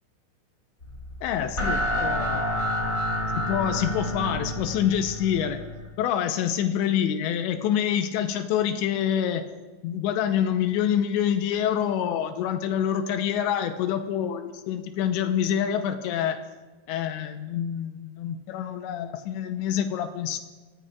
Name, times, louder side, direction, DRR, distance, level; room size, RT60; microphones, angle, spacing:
sound 1, 0.8-5.9, equal, 20° left, 2.7 m, -29 dB
voice 1, 1.2-2.5 3.4-5.6 6.0-9.5 9.8-16.4 16.9-20.4, left 9 dB, 90° left, 7 dB, 3.0 m, -26 dB
29.0 x 16.5 x 2.4 m, 1.3 s
omnidirectional pair, 5.2 m